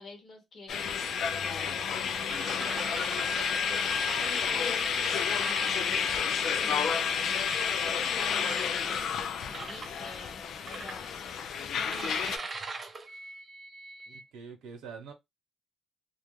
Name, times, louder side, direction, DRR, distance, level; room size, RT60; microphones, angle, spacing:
voice 1, 0.0-3.2 3.7-4.9 5.3-7.4 7.8-9.0 9.4-11.2 11.7-12.5, left 3 dB, 50° left, 1.0 m, -47 dB
sound 1, 0.7-12.4, left 7 dB, 70° left, 0.4 m, -30 dB
sound 2, 2.3-6.9 7.4-7.8 8.4-9.1 9.5-9.9 10.7-11.4 11.9-14.2, right 3 dB, 35° right, 0.5 m, -41 dB
voice 2, 14.1-15.1, right 5 dB, 85° right, 0.7 m, -45 dB
2.3 x 2.1 x 3.0 m
cardioid pair, 90°, 0 cm